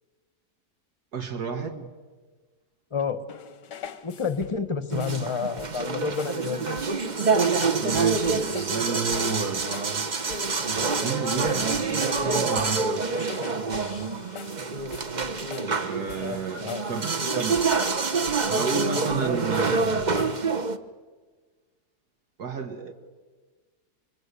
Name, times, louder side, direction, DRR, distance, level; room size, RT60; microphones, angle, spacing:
voice 1, 1.1-1.9 7.8-9.7 11.0-13.1 15.8-17.6 18.5-20.1 22.4-22.9, right 5 dB, 70° right, 4 dB, 2.1 m, -32 dB
voice 2, 2.9-3.2 4.0-6.8 16.1-16.9, left 5 dB, 20° left, 12 dB, 1.0 m, -30 dB
sound 1, 3.3-4.7 5.0-5.3 5.6-5.9 6.2-6.5 6.8-7.0 7.4-7.7 8.0-8.8 9.1-10.0 10.3-10.6 10.9-12.9 13.2-15.8 16.1-16.4 16.7-16.9 17.2-18.6 19.0-19.7 20.0-20.5, left 7 dB, 85° left, 1.7 m, -44 dB
sound 2, 4.9-20.8, right 4 dB, 30° right, 1.0 m, -26 dB
27.5 x 24.5 x 8.3 m, 1.4 s
omnidirectional pair, 1.8 m